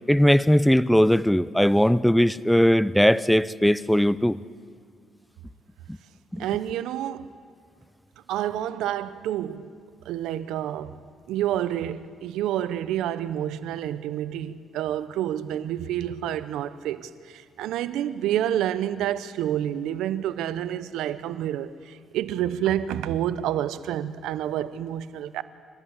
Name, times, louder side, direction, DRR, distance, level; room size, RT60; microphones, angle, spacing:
voice 1, 0.1-4.4 6.3-6.4, equal, 5° left, 0.5 m, -19 dB
voice 2, 6.4-7.3 8.3-9.7 10.0-11.0 11.3-25.4, right 11 dB, 90° right, 0.8 m, -28 dB
29.5 x 14.0 x 8.3 m
cardioid pair, 90°, 0 cm